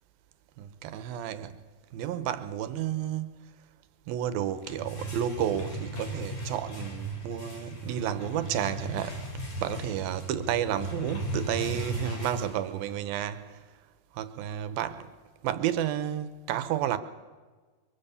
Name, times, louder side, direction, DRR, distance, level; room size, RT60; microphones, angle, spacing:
voice 1, 0.6-1.6 1.9-3.5 4.1-9.2 9.6-13.6 14.1-15.1 15.4-17.0, right 10 dB, 75° right, 2.4 m, -31 dB
sound 1, 4.5-13.1, right 1 dB, 40° left, 5.3 m, -37 dB
24.0 x 23.5 x 7.0 m
omnidirectional pair, 4.9 m